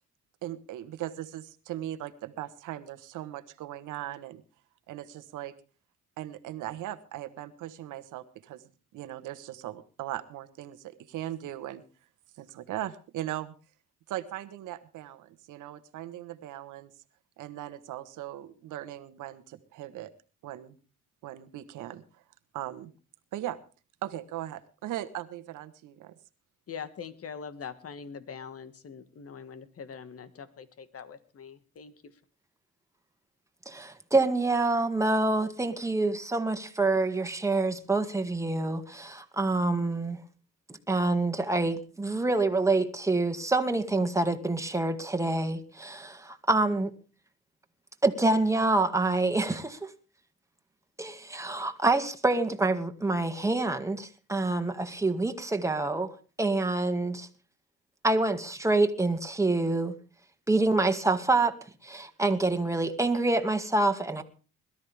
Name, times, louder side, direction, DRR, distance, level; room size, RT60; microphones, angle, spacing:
voice 1, 0.4-4.4 4.9-5.5 6.2-8.6 8.9-11.8 12.4-13.5 14.1-16.9 17.4-20.1 20.4-20.8 21.2-22.2 22.5-22.9 23.3-23.6 24.0-26.1, right 13 dB, 90° right, 1.5 m, -39 dB
voice 2, 26.7-32.1, left 6 dB, 50° left, 1.8 m, -43 dB
voice 3, 33.7-40.2 40.9-46.9 48.0-49.9 51.0-57.3 58.0-60.0 60.5-61.5 61.8-64.2, right 2 dB, 10° right, 2.0 m, -26 dB
21.0 x 13.0 x 3.5 m
cardioid pair, 90°, 30 cm